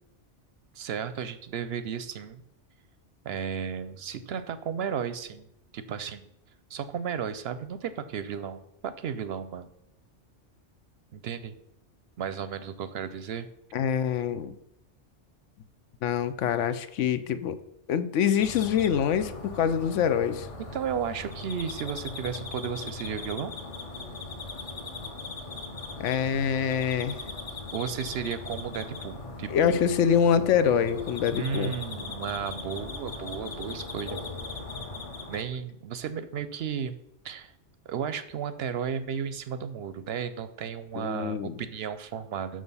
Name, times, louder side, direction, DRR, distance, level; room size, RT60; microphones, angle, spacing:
voice 1, 0.7-2.4 3.2-5.5 5.7-6.3 6.7-9.7 11.1-11.5 12.2-13.5 20.7-23.5 27.7-29.9 31.3-34.2 35.3-37.0 37.2-37.5 37.9-42.6, right 7 dB, 65° right, 13 dB, 0.7 m, -34 dB
voice 2, 13.7-14.5 16.0-17.6 17.9-20.5 26.0-27.2 29.5-31.7 41.0-41.6, left 8 dB, 80° left, 12 dB, 0.9 m, -25 dB
sound 1, 18.4-35.4, left 3 dB, 35° left, 0.7 m, -39 dB
6.4 x 6.2 x 5.4 m, 0.83 s
omnidirectional pair, 1.2 m